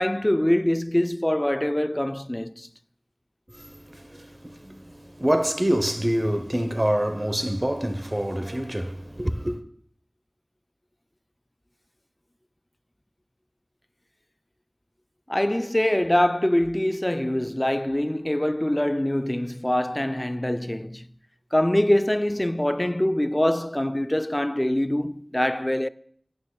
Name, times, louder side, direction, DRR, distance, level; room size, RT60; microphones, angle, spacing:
voice 1, 0.0-2.7 15.3-21.1 21.5-25.9, left 1 dB, 20° left, 0.3 m, -24 dB
voice 2, 3.5-9.6, equal, 25° right, 0.8 m, -26 dB
16.0 x 9.4 x 2.3 m
wide cardioid pair, 45°, 0 cm